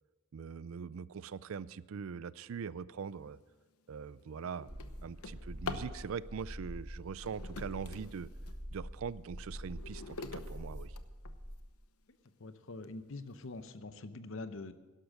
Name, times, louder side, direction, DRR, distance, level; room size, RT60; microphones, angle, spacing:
voice 1, 0.3-3.4 3.9-4.7 5.0-8.3 8.7-11.0, right 6 dB, 65° right, 19 dB, 0.4 m, -42 dB
Drawer open or close, 3.3-3.5 4.0-6.0 7.0-8.6 9.2-11.6 12.2-12.3 12.8-12.9 13.3-13.7, left 4 dB, 85° left, 0.9 m, -46 dB
sound 1, 4.7-11.5, equal, 35° right, 3.7 m, -45 dB
voice 2, 12.4-14.7, left 2 dB, 60° left, 12 dB, 0.8 m, -44 dB
11.5 x 11.5 x 6.3 m, 1.2 s
head